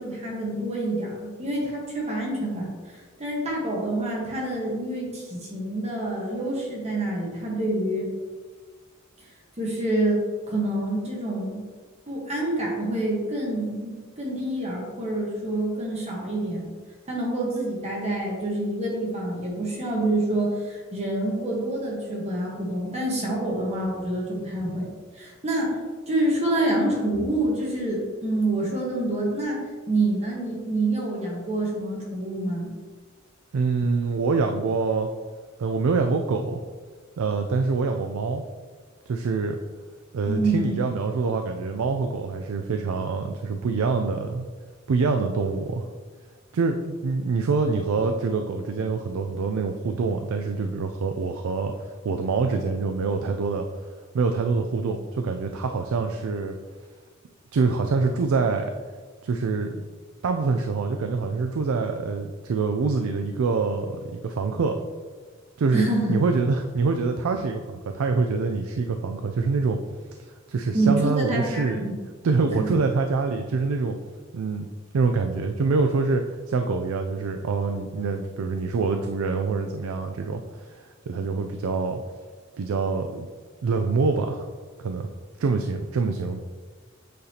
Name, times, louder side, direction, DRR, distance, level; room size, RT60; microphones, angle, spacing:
voice 1, 0.0-8.1 9.6-10.2 10.5-11.6 12.1-16.7 17.1-24.9 25.1-25.8 26.1-32.7 40.3-40.7 65.7-66.1 70.7-72.0 72.6-72.7, right 1 dB, 30° right, -3 dB, 1.3 m, -27 dB
voice 2, 33.5-35.1 35.6-36.6 37.2-38.4 39.1-39.6 40.1-44.5 44.9-45.9 46.5-53.7 54.1-56.6 57.5-58.7 59.2-59.8 60.2-64.8 65.6-69.8 70.5-71.8 72.2-74.0 74.3-74.7 74.9-82.0 82.6-83.3 83.6-84.5 84.8-85.1 85.4-86.5, right 4 dB, 85° right, 5 dB, 0.4 m, -25 dB
8.3 x 4.0 x 2.9 m, 1.5 s
head